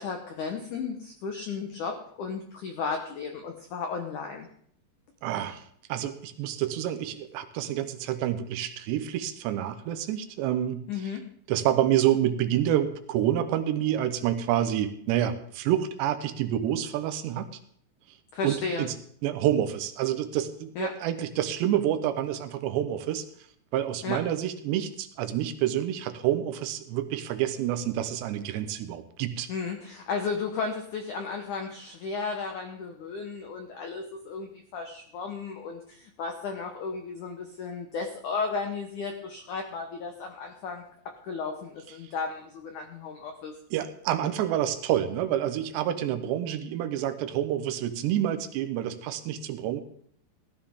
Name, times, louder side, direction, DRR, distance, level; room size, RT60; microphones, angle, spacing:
voice 1, 0.0-4.5 10.9-11.2 18.3-18.9 20.7-20.9 24.0-24.2 29.5-40.8 41.2-43.5, left 5 dB, 85° left, 4 dB, 1.7 m, -34 dB
voice 2, 5.2-5.6 5.9-11.1 11.5-17.5 18.4-18.9 19.2-23.2 23.7-29.5 43.7-49.8, right 11 dB, 80° right, 9 dB, 3.0 m, -28 dB
17.0 x 13.0 x 3.6 m, 0.62 s
omnidirectional pair, 5.1 m